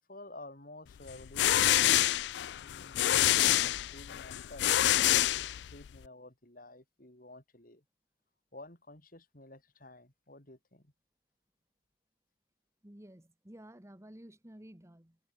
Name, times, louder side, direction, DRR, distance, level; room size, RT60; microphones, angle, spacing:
voice 1, 0.1-1.9 2.5-7.8 8.5-10.9, left 2 dB, 50° left, 4.3 m, -52 dB
sound 1, 1.1-6.0, left 13 dB, 65° left, 0.3 m, -27 dB
voice 2, 12.8-15.2, right 1 dB, 15° right, 1.3 m, -52 dB
head